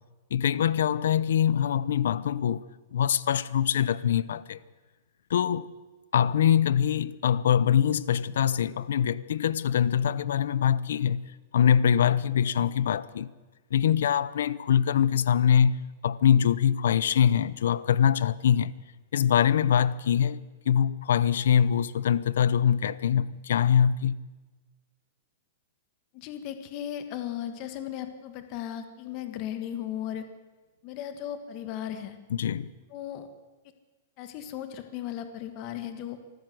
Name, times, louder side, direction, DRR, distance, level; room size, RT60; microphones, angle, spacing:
voice 1, 0.3-2.7 2.9-4.6 5.3-5.7 6.1-11.2 11.5-13.3 13.7-15.8 16.0-18.7 19.1-24.2 32.3-32.7, left 9 dB, 85° left, 0.8 m, -23 dB
voice 2, 26.1-30.2 30.8-32.2 32.9-33.3 34.2-36.2, left 10 dB, 30° left, 1.5 m, -36 dB
25.0 x 15.0 x 7.8 m
supercardioid pair, 170°, 0 cm